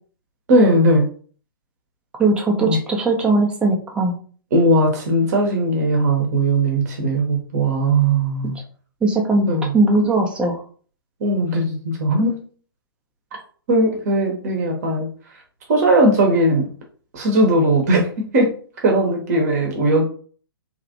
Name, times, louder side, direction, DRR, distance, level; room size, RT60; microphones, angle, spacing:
voice 1, 0.5-1.1 2.6-2.8 4.5-8.6 9.5-9.7 11.2-12.4 13.7-15.1 15.7-16.6 17.1-18.5 18.8-20.0, right 1 dB, 45° right, 1 dB, 0.9 m, -18 dB
voice 2, 2.2-4.1 9.0-9.5 9.7-10.6, right 2 dB, 10° right, 1 dB, 0.6 m, -19 dB
3.0 x 2.4 x 2.6 m, 0.43 s
figure-of-eight pair, 120°, 12 cm